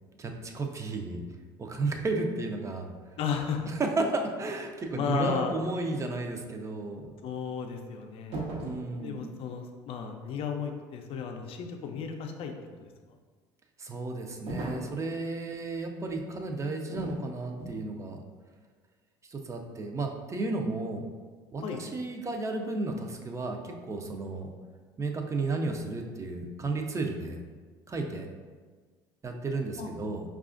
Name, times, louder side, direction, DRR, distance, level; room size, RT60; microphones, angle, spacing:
voice 1, 0.2-1.2 1.6-2.9 3.7-7.1 8.6-9.2 13.8-18.2 19.3-21.1 21.5-24.5 25.0-27.4 27.9-28.3 29.2-30.2, right 3 dB, 25° right, 3 dB, 0.5 m, -33 dB
voice 2, 3.2-3.7 4.9-5.6 7.2-8.4 9.0-12.9 21.6-21.9 29.8-29.9, left 6 dB, 55° left, 5 dB, 0.5 m, -34 dB
sound 1, 8.3-8.9 14.5-15.0 16.9-17.2 17.6-17.9, right 2 dB, 70° right, 0.9 m, -36 dB
4.8 x 2.4 x 2.4 m, 1.5 s
hypercardioid pair, 75°, 11 cm